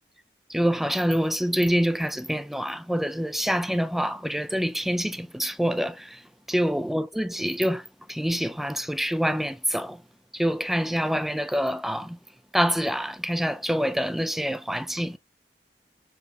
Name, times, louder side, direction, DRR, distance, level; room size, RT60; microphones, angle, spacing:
voice 1, 0.5-6.2 6.5-10.0 10.3-12.2 12.5-15.2, equal, ahead, 0.4 m, -26 dB
6.9 x 3.0 x 2.3 m
head